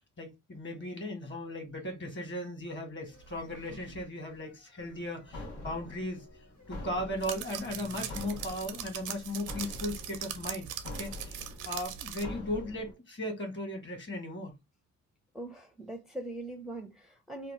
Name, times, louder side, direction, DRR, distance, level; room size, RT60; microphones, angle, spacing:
voice 1, 0.2-6.2 6.7-14.6, left 1 dB, 40° left, 1.5 m, -37 dB
sound 1, 3.1-8.1, left 3 dB, 65° left, 1.5 m, -57 dB
sound 2, 3.2-4.0 7.2-12.2, right 10 dB, 85° right, 0.6 m, -41 dB
sound 3, 4.8-12.9, left 1 dB, 85° left, 1.1 m, -46 dB
voice 2, 15.3-17.5, right 1 dB, ahead, 0.5 m, -41 dB
2.9 x 2.0 x 3.1 m
cardioid pair, 90°, 30 cm